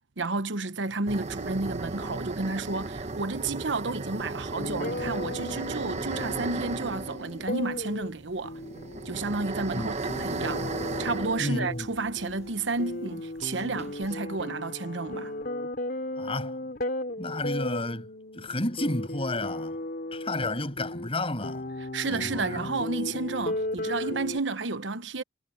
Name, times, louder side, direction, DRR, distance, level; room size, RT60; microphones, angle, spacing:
voice 1, 0.2-8.6 9.0-10.7 11.0-15.3 21.9-25.2, right 3 dB, 80° right, 1.1 m, -31 dB
sound 1, 1.1-12.5 12.8-12.9 13.4-14.2, right 3 dB, 40° right, 0.9 m, -36 dB
sound 2, 4.6-24.4, left 1 dB, 50° left, 3.7 m, -36 dB
voice 2, 11.4-11.9 16.2-16.6 17.2-18.1 18.3-19.8 20.1-21.6 22.1-22.7, left 2 dB, 30° left, 7.0 m, -31 dB
head